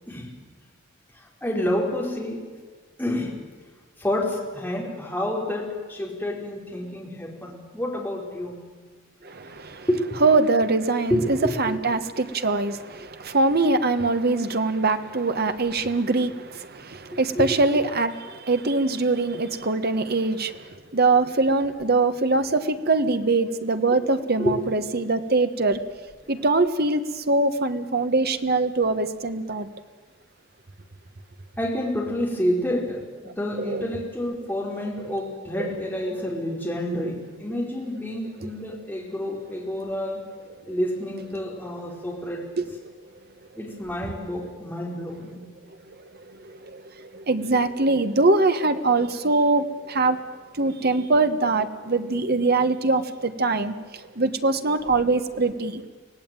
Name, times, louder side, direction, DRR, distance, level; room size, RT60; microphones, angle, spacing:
voice 1, 1.1-2.5 3.0-3.4 4.0-8.6 9.9-10.3 11.1-11.8 17.1-17.5 23.9-24.0 24.4-24.7 26.2-26.3 31.6-40.3 40.7-42.5 43.6-45.4, left 1 dB, 10° left, -1 dB, 4.8 m, -29 dB
voice 2, 9.2-9.9 10.2-25.8 26.3-29.7 33.6-33.9 35.0-35.1 35.6-35.7 42.6-42.7 46.3-50.2 50.5-55.8, right 3 dB, 50° right, 9 dB, 1.5 m, -23 dB
25.0 x 17.5 x 9.2 m, 1.5 s
head